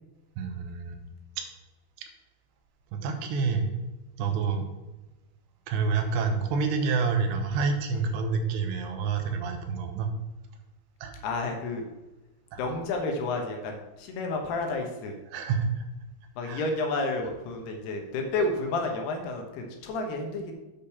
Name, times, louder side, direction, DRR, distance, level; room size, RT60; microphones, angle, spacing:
voice 1, 0.4-1.0 2.9-3.7 4.2-4.7 5.7-10.1 11.0-11.1 12.5-12.6 15.3-15.7 16.4-16.6, right 5 dB, 75° right, 5 dB, 2.9 m, -28 dB
voice 2, 11.2-11.8 12.6-15.2 16.4-20.5, left 3 dB, 70° left, 3 dB, 2.8 m, -31 dB
8.7 x 5.1 x 5.7 m, 1.1 s
omnidirectional pair, 5.3 m